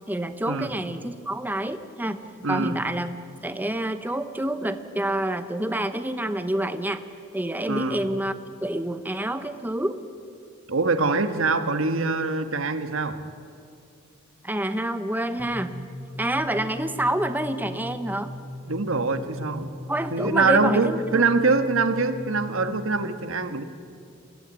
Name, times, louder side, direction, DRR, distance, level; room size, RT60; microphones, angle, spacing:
voice 1, 0.1-2.2 2.5-7.0 7.3-10.0 14.4-18.3 19.9-21.3, right 1 dB, 10° right, 10 dB, 0.9 m, -28 dB
voice 2, 2.4-2.8 7.7-8.0 10.7-13.2 18.7-19.7 20.1-23.6, right 4 dB, 70° right, 9 dB, 1.4 m, -24 dB
sound 1, 15.4-23.0, left 1 dB, 35° left, 2.9 m, -39 dB
22.5 x 16.0 x 9.7 m, 2.4 s
head